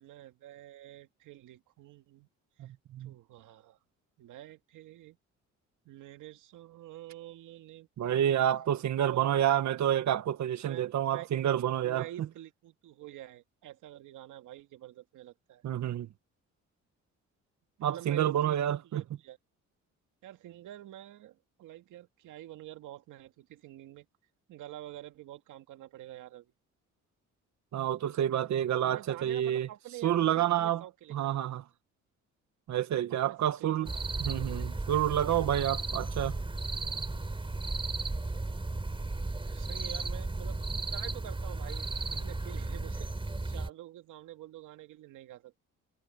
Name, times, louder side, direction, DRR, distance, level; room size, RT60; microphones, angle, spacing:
voice 1, 0.0-2.3 2.6-2.7 3.0-3.8 4.2-5.2 5.8-8.3 9.1-9.5 10.6-11.3 11.8-15.6 17.8-19.4 20.2-24.1 24.5-26.5 28.8-31.7 33.1-34.0 39.4-43.1 43.4-45.5, right 13 dB, 85° right, 2.3 m, -48 dB
voice 2, 2.6-3.1 8.0-12.1 15.6-16.1 17.8-19.0 27.7-29.7 30.0-30.8 31.1-31.6 32.7-33.9 34.2-36.4, right 11 dB, 70° right, 1.6 m, -29 dB
sound 1, 33.8-43.7, right 3 dB, 15° right, 3.8 m, -35 dB
cardioid pair, 90°, 30 cm